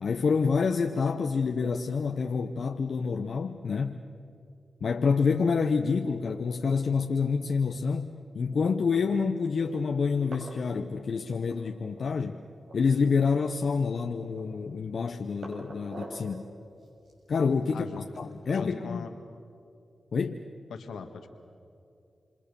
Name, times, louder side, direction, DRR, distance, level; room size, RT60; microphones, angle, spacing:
voice 1, 0.0-4.0 4.8-12.4 12.7-16.5 17.3-17.9 18.2-19.1 20.1-20.4, left 5 dB, 70° left, 5 dB, 0.9 m, -27 dB
sound 1, 8.6-9.0 9.6-9.7 10.0-10.6 10.9-12.0 12.3-12.4 12.6-13.4 13.8-14.6 15.0-16.3 16.8-18.6, right 2 dB, 80° right, 6.3 m, -46 dB
voice 2, 17.7-18.1 18.5-19.1 20.7-21.3, left 5 dB, 85° left, 6 dB, 1.8 m, -40 dB
27.5 x 25.5 x 7.0 m, 2.6 s
cardioid pair, 45°, 0 cm